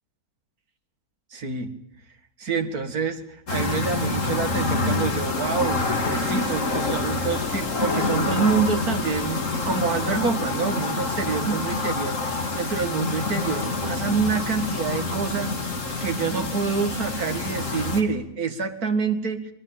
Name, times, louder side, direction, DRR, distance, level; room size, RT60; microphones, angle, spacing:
voice 1, 1.3-1.7 2.4-3.2 3.5-15.5 16.0-19.5, right 5 dB, 75° right, 7 dB, 2.5 m, -27 dB
sound 1, 3.5-18.0, left 3 dB, 55° left, 2.9 m, -27 dB
24.0 x 22.5 x 8.9 m, 0.77 s
omnidirectional pair, 1.6 m